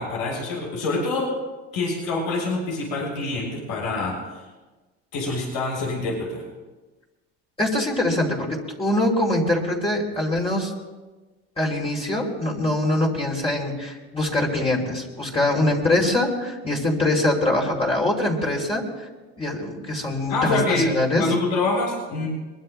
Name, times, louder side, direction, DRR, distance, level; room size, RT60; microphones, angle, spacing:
voice 1, 0.0-1.3 1.7-4.4 5.1-6.4 20.3-22.3, left 2 dB, 80° left, -3 dB, 6.8 m, -26 dB
voice 2, 7.6-10.7 11.6-18.8 19.4-21.2, left 1 dB, 20° left, -3 dB, 3.1 m, -23 dB
23.0 x 22.0 x 2.2 m, 1.2 s
supercardioid pair, 90°, 32 cm